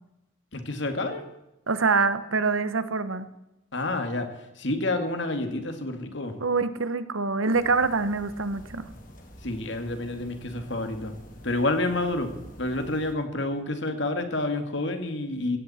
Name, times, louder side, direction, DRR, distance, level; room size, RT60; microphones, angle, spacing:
voice 1, 0.5-1.2 3.7-6.4 9.4-11.1 11.4-12.3 12.6-15.6, left 2 dB, 65° left, 7 dB, 2.1 m, -29 dB
voice 2, 1.7-3.3 6.4-8.9, right 4 dB, 85° right, 13 dB, 1.1 m, -25 dB
sound 1, 7.5-13.1, equal, 40° left, 2.6 m, -47 dB
16.5 x 16.0 x 4.3 m, 0.91 s
head